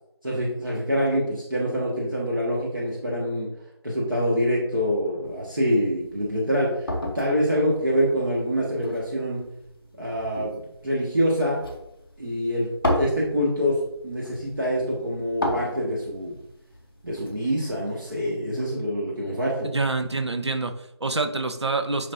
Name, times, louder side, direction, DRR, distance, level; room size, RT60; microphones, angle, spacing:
voice 1, 0.2-3.5 3.8-6.9 7.1-9.4 10.0-11.6 12.2-16.4 17.0-19.7, equal, 50° right, -4 dB, 1.8 m, -25 dB
sound 1, 5.2-18.1, left 1 dB, 5° left, 0.6 m, -35 dB
voice 2, 19.6-22.1, right 3 dB, 75° right, 7 dB, 1.0 m, -27 dB
9.4 x 5.4 x 2.7 m, 0.81 s
figure-of-eight pair, 175°, 14 cm